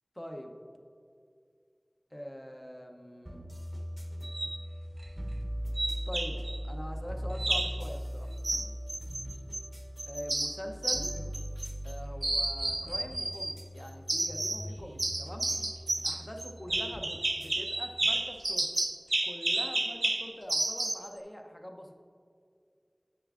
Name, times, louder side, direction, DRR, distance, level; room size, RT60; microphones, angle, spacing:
voice 1, 0.1-0.6 2.1-3.5 6.1-6.4 6.6-8.3 10.1-11.1 11.8-15.5 16.0-18.7 19.2-21.9, equal, 30° left, 3 dB, 0.6 m, -43 dB
sound 1, 3.3-18.5, equal, 5° right, 0.8 m, -40 dB
sound 2, 4.2-4.6 5.8-6.6 7.4-7.8 8.4-9.7 10.0-11.9 12.2-13.6 14.1-14.7 15.0-21.1, right 2 dB, 75° right, 0.3 m, -32 dB
9.2 x 6.7 x 2.4 m, 2.3 s
wide cardioid pair, 45°, 0 cm